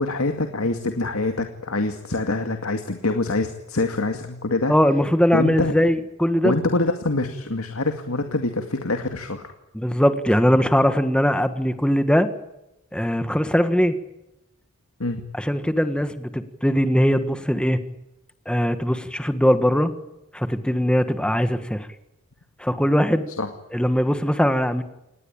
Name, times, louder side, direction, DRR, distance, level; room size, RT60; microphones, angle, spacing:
voice 1, 0.0-4.7 5.3-5.7 6.4-9.5 15.0-15.2 23.4-23.5, left 2 dB, 80° left, 6 dB, 2.3 m, -25 dB
voice 2, 4.7-6.6 9.7-12.3 12.9-13.9 15.3-17.8 18.4-19.9 20.3-21.9 22.6-23.3 23.7-24.8, equal, 5° left, 10 dB, 1.6 m, -20 dB
27.5 x 19.5 x 8.9 m, 0.91 s
head